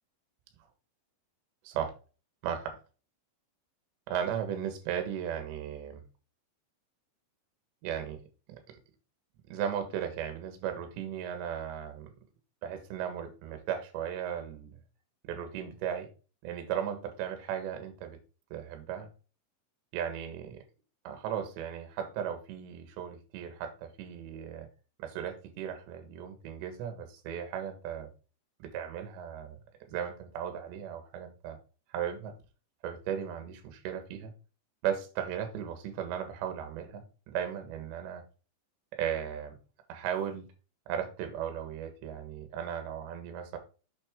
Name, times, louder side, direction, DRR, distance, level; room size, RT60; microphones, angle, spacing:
voice 1, 2.4-2.8 4.1-6.0 7.8-8.2 8.5-8.8 9.5-12.1 12.6-14.8 15.2-16.1 16.4-18.2 18.5-19.1 19.9-20.6 21.0-24.7 25.0-28.1 28.6-29.6 29.9-31.6 31.9-32.3 32.8-34.3 34.8-38.2 38.9-39.6 39.9-40.5 40.9-43.6, right 9 dB, 75° right, 3.5 m, -36 dB
7.5 x 6.2 x 3.6 m
omnidirectional pair, 5.3 m